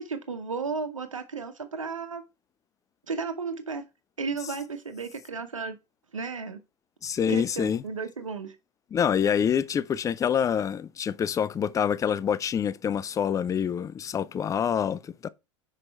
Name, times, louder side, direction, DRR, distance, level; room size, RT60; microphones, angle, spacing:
voice 1, 0.0-2.2 3.1-3.8 4.2-5.8 6.1-6.6 7.3-8.6, right 4 dB, 85° right, 0.7 m, -34 dB
voice 2, 7.0-7.8 8.9-15.3, left 8 dB, 20° left, 0.4 m, -26 dB
6.0 x 4.9 x 4.3 m
figure-of-eight pair, 80°, 16 cm